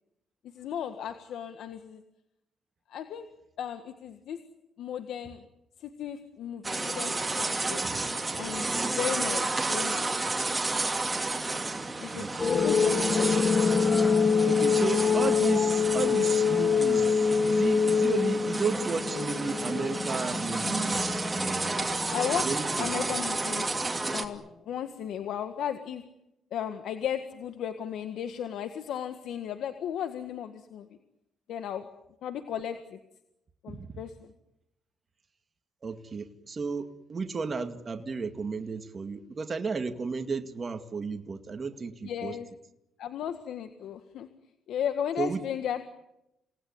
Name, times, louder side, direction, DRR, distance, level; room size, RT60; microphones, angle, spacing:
voice 1, 0.5-2.0 2.9-3.3 3.6-4.4 4.8-5.4 5.8-7.8 8.4-10.2 12.0-13.3 22.1-22.5 22.8-23.7 24.1-26.0 26.5-31.0 31.5-31.9 32.2-33.0 33.6-34.3 42.0-42.5 43.0-44.3 44.7-45.9, left 9 dB, 75° left, 8 dB, 1.6 m, -35 dB
sound 1, 6.6-24.3, right 3 dB, 20° right, 2.8 m, -31 dB
voice 2, 12.1-12.5 14.5-21.9 22.4-23.1 33.7-34.0 35.8-42.4 45.2-45.4, right 4 dB, 35° right, 6 dB, 2.2 m, -33 dB
sound 2, 12.4-23.4, left 6 dB, 40° left, 2.3 m, -26 dB
28.0 x 19.0 x 9.6 m, 0.89 s
cardioid pair, 90°, 0 cm